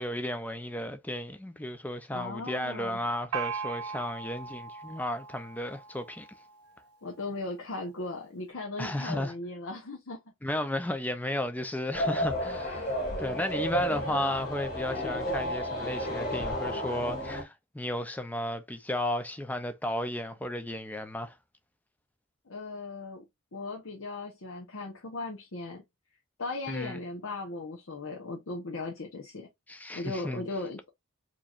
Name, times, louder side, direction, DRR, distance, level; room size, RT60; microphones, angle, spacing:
voice 1, 0.0-6.3 8.8-9.3 10.4-12.9 13.2-21.4 26.7-27.0 29.7-30.4, left 1 dB, 5° left, 0.5 m, -34 dB
voice 2, 2.1-3.0 7.0-10.2 22.5-23.2 23.5-25.8 26.4-29.5 29.9-30.9, left 2 dB, 65° left, 0.9 m, -37 dB
Gong, 3.3-6.8, right 5 dB, 85° right, 0.6 m, -39 dB
sound 1, 11.9-17.4, equal, 40° left, 2.0 m, -32 dB
4.5 x 3.0 x 2.4 m
head